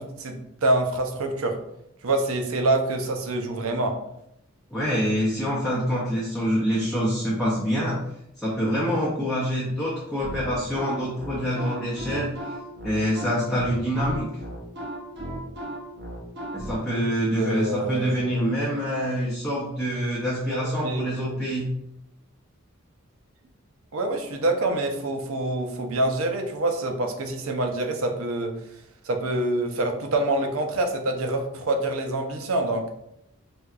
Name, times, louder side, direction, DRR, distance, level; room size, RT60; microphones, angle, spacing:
voice 1, 0.0-1.6 2.0-4.0 17.3-18.2 20.5-21.3 23.9-28.5 29.1-32.9, right 2 dB, 90° right, 4 dB, 0.5 m, -26 dB
voice 2, 4.7-8.0 8.4-12.5 12.8-14.3 16.5-21.7, equal, ahead, -7 dB, 0.5 m, -26 dB
sound 1, 10.2-16.7, right 1 dB, 55° right, 0.9 m, -35 dB
4.3 x 2.2 x 2.4 m, 0.78 s
head